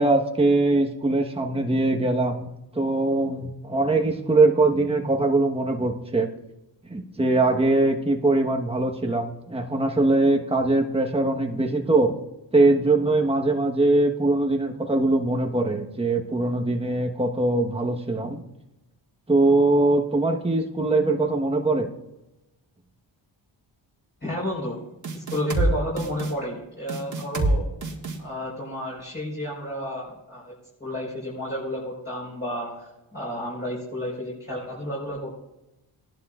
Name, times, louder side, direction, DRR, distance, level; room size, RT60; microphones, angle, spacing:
voice 1, 0.0-2.5 2.7-6.3 6.9-12.1 12.5-18.4 19.3-21.9, right 2 dB, 10° right, 2 dB, 1.3 m, -22 dB
voice 2, 24.2-24.8 25.1-27.6 28.2-30.5 30.8-35.4, left 1 dB, 20° left, -7 dB, 5.1 m, -31 dB
sound 1, 25.0-25.7 26.0-26.3 26.9-27.5 27.8-28.2, right 2 dB, 40° right, 2.0 m, -25 dB
16.5 x 11.5 x 2.5 m, 0.94 s
cardioid pair, 65°, 46 cm